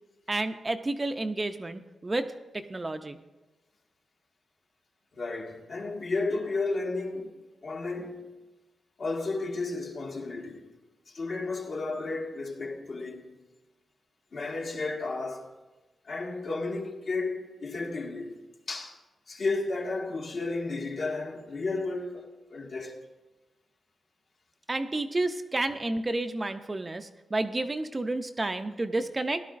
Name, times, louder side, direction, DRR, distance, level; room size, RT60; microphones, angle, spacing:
voice 1, 0.3-2.3 2.5-3.2 24.7-29.4, right 2 dB, 25° right, 0.5 m, -30 dB
voice 2, 5.1-8.3 9.0-10.7 11.1-13.4 14.3-15.5 16.1-18.4 18.7-19.0 19.3-23.0, left 3 dB, 55° left, 1.7 m, -33 dB
16.5 x 11.5 x 2.5 m
wide cardioid pair, 110°, 0 cm